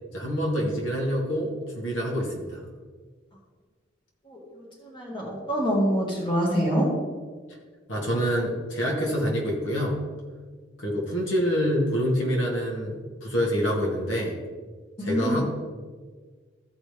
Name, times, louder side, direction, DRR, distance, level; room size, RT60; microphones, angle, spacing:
voice 1, 0.1-2.6 7.9-10.0 10.8-14.4 15.0-15.4, equal, 75° left, -2 dB, 2.1 m, -26 dB
voice 2, 4.8-6.9 15.0-15.4, equal, 25° left, -3 dB, 1.9 m, -25 dB
14.5 x 5.0 x 3.5 m, 1.5 s
head